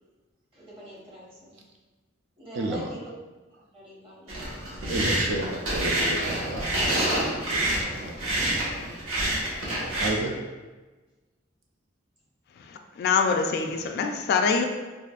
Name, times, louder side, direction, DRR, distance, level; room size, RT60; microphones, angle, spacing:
voice 1, 0.5-1.6 2.4-3.1 3.6-4.8 8.9-9.0, right 1 dB, 30° right, -6 dB, 1.1 m, -45 dB
voice 2, 2.6-2.9 4.9-8.1 10.0-10.4, right 2 dB, 65° right, 2 dB, 0.4 m, -32 dB
sound 1, 4.3-10.1, right 1 dB, 85° right, 1.2 m, -27 dB
voice 3, 12.6-14.6, left 5 dB, 55° left, 5 dB, 0.3 m, -25 dB
4.8 x 2.5 x 2.4 m, 1.3 s
head